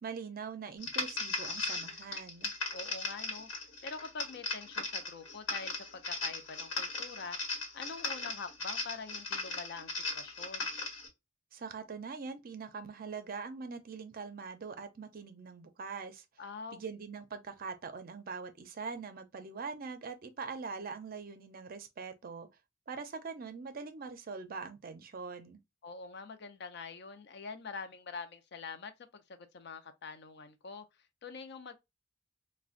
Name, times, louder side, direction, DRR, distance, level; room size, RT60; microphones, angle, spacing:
voice 1, 0.0-2.5 11.5-16.2 16.7-22.5 22.9-25.6, right 5 dB, 50° right, 0.5 m, -43 dB
sound 1, 0.8-11.1, left 3 dB, 90° left, 1.1 m, -38 dB
voice 2, 2.7-3.5 3.8-7.4 7.7-10.7 16.4-16.8 25.8-30.9 31.2-31.8, left 4 dB, 60° left, 0.5 m, -45 dB
3.7 x 2.2 x 2.4 m
head